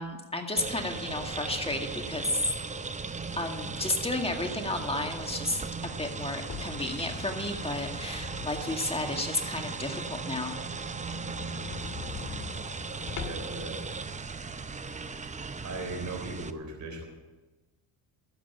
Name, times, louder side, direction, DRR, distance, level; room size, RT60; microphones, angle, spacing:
voice 1, 0.0-2.5 3.4-10.6, left 2 dB, 15° left, 3 dB, 2.0 m, -32 dB
sound 1, 0.6-16.5, right 4 dB, 15° right, 0.7 m, -37 dB
sound 2, 6.4-8.9 9.3-9.4 9.8-9.9 10.2-10.3 10.5-10.6 11.0-13.6, left 6 dB, 45° left, 1.9 m, -42 dB
voice 2, 11.2-11.5 13.2-13.8 15.6-17.0, right 3 dB, 45° right, 2 dB, 3.6 m, -38 dB
12.5 x 8.1 x 9.0 m, 1.2 s
supercardioid pair, 80°, 41 cm